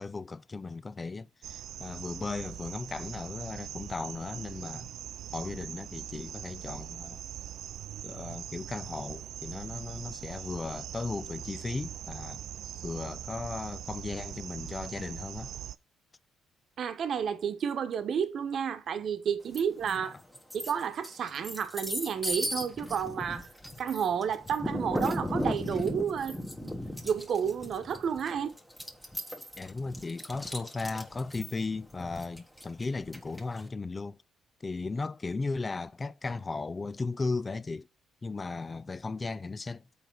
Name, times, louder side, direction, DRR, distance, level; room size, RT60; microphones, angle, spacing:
voice 1, 0.0-4.9 5.3-7.2 8.0-12.4 12.8-15.5 20.0-20.1 29.6-34.2 34.6-37.9 38.2-39.8, left 3 dB, 25° left, 0.4 m, -36 dB
sound 1, 1.4-15.8, right 11 dB, 75° right, 0.4 m, -42 dB
voice 2, 16.8-20.1 20.5-23.5 23.8-26.8 27.0-28.5, right 7 dB, 60° right, 1.0 m, -31 dB
sound 2, 19.5-20.0 20.3-33.6, equal, 5° left, 1.4 m, -36 dB
7.0 x 5.0 x 6.0 m
cardioid pair, 90°, 0 cm